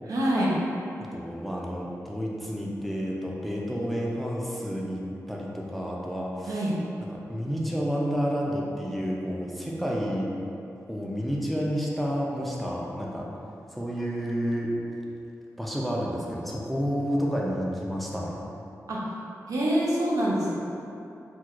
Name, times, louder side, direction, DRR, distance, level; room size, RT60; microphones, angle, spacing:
voice 1, 0.1-0.6 6.5-6.8 18.9-19.1 19.5-20.6, equal, 85° right, -5 dB, 0.6 m, -25 dB
voice 2, 1.0-5.0 5.3-6.6 7.1-10.3 10.9-13.3 13.7-14.7 15.6-18.4, equal, ahead, -3 dB, 0.3 m, -30 dB
4.3 x 2.2 x 2.4 m, 2.8 s
wide cardioid pair, 155°, 6 cm